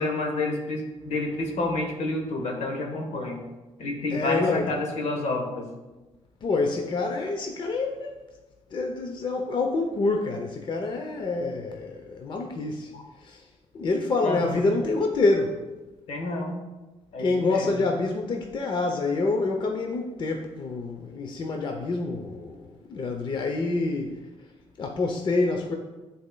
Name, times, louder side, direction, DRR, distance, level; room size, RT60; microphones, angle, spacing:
voice 1, 0.0-3.4 3.8-5.7 12.9-13.0 14.2-14.6 16.1-16.6 17.1-17.7, left 2 dB, 75° left, 3 dB, 1.2 m, -29 dB
voice 2, 4.1-4.7 6.4-8.2 8.7-12.9 13.2-13.5 13.7-15.6 17.2-24.2 24.8-25.8, left 3 dB, 40° left, 3 dB, 0.6 m, -27 dB
10.5 x 4.3 x 2.2 m, 1.2 s
cardioid pair, 110°, 12 cm